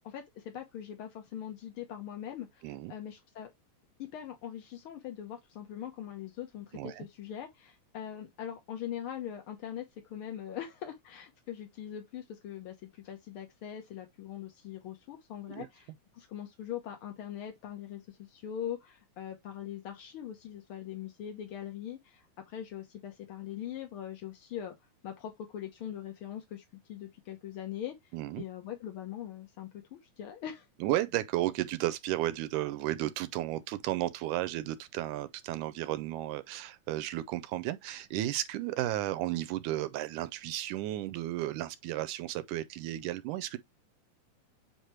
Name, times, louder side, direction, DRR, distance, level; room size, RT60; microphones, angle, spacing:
voice 1, 0.0-3.5 4.0-24.7 25.0-27.9 28.4-30.7, left 10 dB, 70° left, 1.3 m, -42 dB
voice 2, 2.6-2.9 6.7-7.1 15.5-15.7 28.1-28.4 30.8-43.6, right 15 dB, 80° right, 2.0 m, -33 dB
8.1 x 2.9 x 4.4 m
omnidirectional pair, 3.7 m